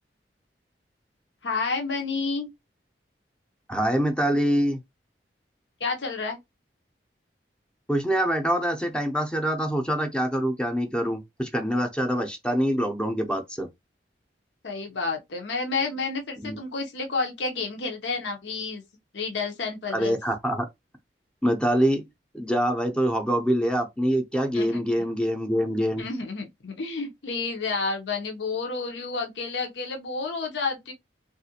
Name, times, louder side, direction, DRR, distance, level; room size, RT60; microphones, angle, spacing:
voice 1, 1.4-2.5 5.8-6.4 14.6-18.8 19.1-20.2 24.5-25.1 26.0-30.9, left 4 dB, 85° left, 0.7 m, -30 dB
voice 2, 3.7-4.8 7.9-13.7 16.4-16.6 19.9-20.6 21.4-22.0 22.3-26.0, equal, 5° left, 0.5 m, -25 dB
3.5 x 2.4 x 2.8 m
head